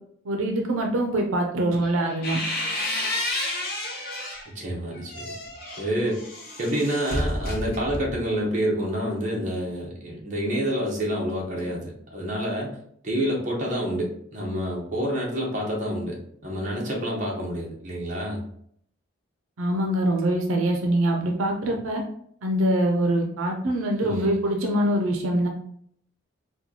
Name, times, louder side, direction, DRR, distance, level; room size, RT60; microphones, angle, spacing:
voice 1, 0.2-2.4 19.6-22.0 22.4-25.5, right 1 dB, 85° right, 2 dB, 0.5 m, -24 dB
sound 1, 1.8-4.5 4.9-8.3, left 1 dB, 45° left, 0.9 m, -31 dB
voice 2, 4.5-5.3 5.8-6.2 6.6-12.8 13.0-16.2 16.4-18.4 24.0-24.3, equal, 35° right, -2 dB, 0.9 m, -28 dB
4.3 x 2.3 x 2.8 m, 0.65 s
head